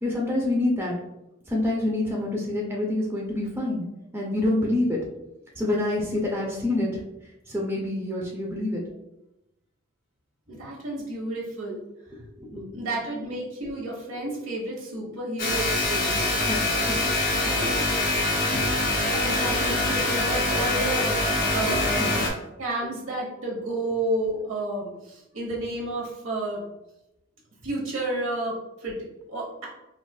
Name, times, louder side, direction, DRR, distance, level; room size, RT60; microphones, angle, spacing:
voice 1, 0.0-0.9 1.5-3.8 4.1-5.0 5.6-7.0 7.5-8.8 12.4-12.7 16.5-17.0 18.5-18.6 21.7-22.2, left 1 dB, 10° right, -3 dB, 0.4 m, -27 dB
voice 2, 10.5-11.8 12.7-16.3 17.4-18.4 19.0-21.1 21.5-22.2 22.6-26.7 27.6-29.7, right 1 dB, 80° right, -2 dB, 1.0 m, -31 dB
sound 1, 15.4-22.3, left 2 dB, 45° left, 0.7 m, -24 dB
3.8 x 2.4 x 2.2 m, 0.91 s
head